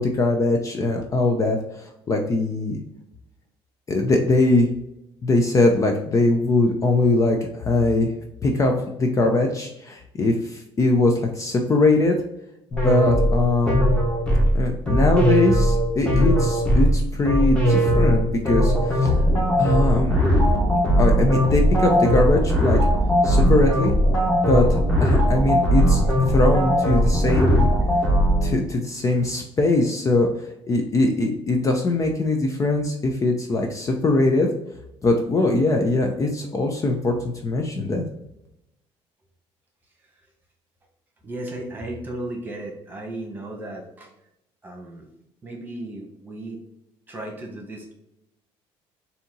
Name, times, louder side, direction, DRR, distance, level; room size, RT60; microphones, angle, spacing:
voice 1, 0.0-2.8 3.9-4.7 5.2-8.1 8.4-12.1 12.7-13.8 14.5-19.3 19.6-20.2 21.0-22.8 23.2-23.9 24.5-27.7 28.4-30.3 30.7-34.5 35.0-38.0, left 2 dB, 30° left, 2 dB, 0.6 m, -21 dB
sound 1, 12.7-28.6, equal, 10° left, 1.4 m, -19 dB
voice 2, 41.2-44.1 44.6-45.1 45.4-46.6 47.1-47.9, right 1 dB, 15° right, -1 dB, 1.3 m, -35 dB
4.2 x 2.8 x 3.8 m, 0.85 s
cardioid pair, 120°, 11 cm